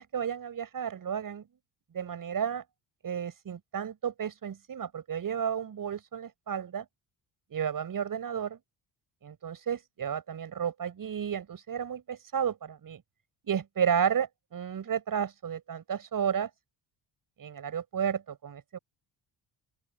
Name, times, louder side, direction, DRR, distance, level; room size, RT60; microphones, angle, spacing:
voice 1, 0.0-1.4 1.9-2.6 3.0-6.9 7.5-8.6 9.2-13.0 13.4-16.5 17.4-18.8, right 8 dB, 45° right, 7.0 m, -32 dB
open air
cardioid pair, 145°, 46 cm